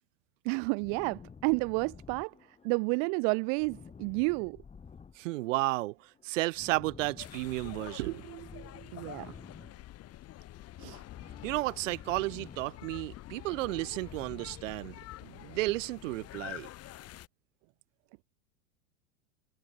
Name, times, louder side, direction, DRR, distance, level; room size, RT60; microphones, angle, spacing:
voice 1, 0.4-2.3 2.6-4.6 8.9-9.3 10.8-11.0, right 40 dB or more, 35° right, 0.4 m, -30 dB
sound 1, 0.8-2.9 3.2-5.7 6.0-7.9 8.3-10.3 10.5-13.1 13.4-14.8, left 6 dB, 15° left, 3.8 m, -52 dB
voice 2, 5.2-5.9 6.2-9.3 11.4-15.0 15.2-16.7, right 20 dB, 65° right, 1.7 m, -33 dB
sound 2, 7.2-17.3, left 15 dB, 35° left, 5.9 m, -47 dB
supercardioid pair, 135°, 41 cm